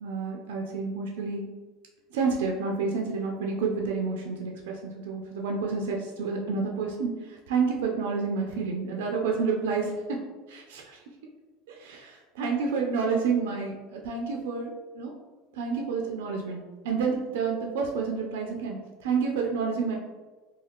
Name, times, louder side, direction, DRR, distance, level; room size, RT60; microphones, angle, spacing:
voice 1, 0.0-1.5 2.1-11.0 11.7-15.1 15.5-20.0, right 5 dB, 85° right, 0 dB, 0.4 m, -29 dB
2.4 x 2.2 x 3.4 m, 1.3 s
supercardioid pair, 115°, 0 cm